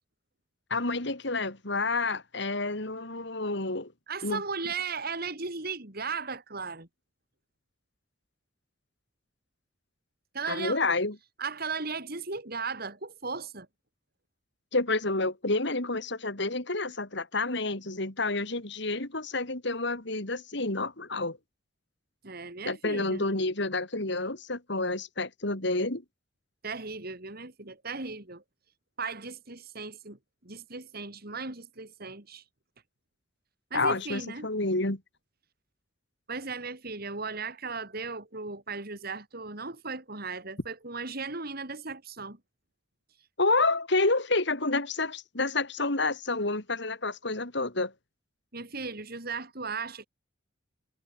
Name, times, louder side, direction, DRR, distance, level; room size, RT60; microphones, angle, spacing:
voice 1, 0.7-3.9 4.2-4.4 10.4-11.2 14.7-21.4 22.7-26.0 33.7-35.0 43.4-47.9, left 3 dB, 65° left, 3.5 m, -29 dB
voice 2, 4.1-6.9 10.3-10.8 11.4-13.7 22.2-23.2 26.6-28.4 29.0-30.2 30.4-32.4 33.7-34.5 36.3-42.4 48.5-50.1, right 4 dB, 55° right, 4.1 m, -36 dB
head